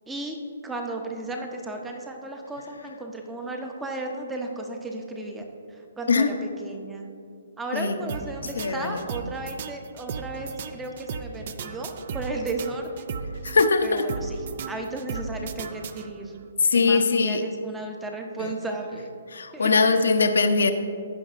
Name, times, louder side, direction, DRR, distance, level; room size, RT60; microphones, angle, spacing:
voice 1, 0.1-0.4 0.6-7.1 7.6-13.1 13.8-16.3 16.7-19.1 19.5-19.7, right 2 dB, 10° right, 2 dB, 0.7 m, -34 dB
sound 1, 8.1-16.4, right 6 dB, 45° right, 0.4 m, -36 dB
voice 2, 8.6-9.0 13.4-14.0 16.7-17.4 18.4-18.5 19.3-20.7, left 4 dB, 85° left, 8 dB, 0.7 m, -21 dB
16.0 x 5.3 x 2.5 m, 2.4 s
hypercardioid pair, 155°, 0 cm